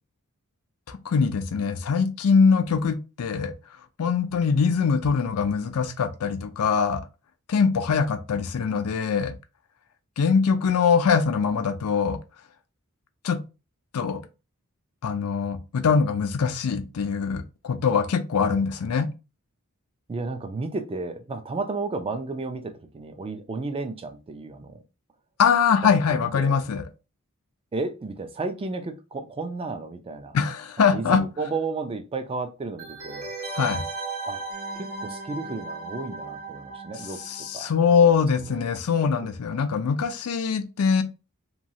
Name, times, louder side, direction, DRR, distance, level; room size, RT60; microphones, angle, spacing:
voice 1, 0.9-3.5 4.0-7.0 7.5-9.3 10.2-12.2 13.2-13.4 13.9-14.2 15.0-19.1 25.4-26.8 30.3-31.2 33.5-33.9 37.3-41.0, left 6 dB, 80° left, 0.4 m, -23 dB
voice 2, 20.1-24.8 25.8-26.6 27.7-30.4 30.9-33.3 34.3-34.4 34.7-37.2 37.5-37.7 38.0-38.8 39.2-39.3, right 3 dB, 25° right, 0.3 m, -33 dB
sound 1, 32.8-38.3 38.5-38.6, right 3 dB, 80° right, 0.8 m, -36 dB
3.0 x 2.3 x 2.7 m
head